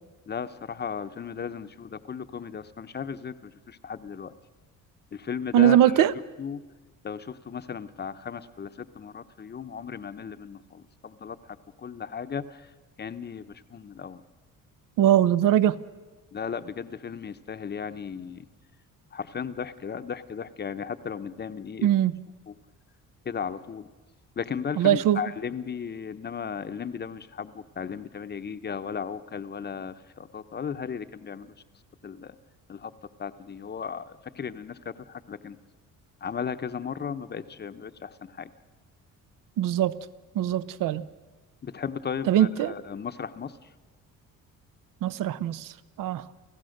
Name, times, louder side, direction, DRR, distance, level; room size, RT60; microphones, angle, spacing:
voice 1, 0.3-4.3 5.1-6.0 6.4-6.6 7.0-12.7 13.0-14.2 16.3-18.5 19.1-21.9 22.5-22.6 23.2-23.9 24.4-31.5 32.0-32.4 32.7-32.9 33.2-35.6 36.2-38.5 41.6-43.7, left 7 dB, 30° left, 0.8 m, -36 dB
voice 2, 5.5-6.1 15.0-15.8 21.8-22.1 24.8-25.2 39.6-40.0 40.3-41.0 42.3-42.7 45.0-45.7 46.0-46.2, right 11 dB, 75° right, 0.8 m, -21 dB
29.5 x 15.0 x 6.6 m
cardioid pair, 110°, 33 cm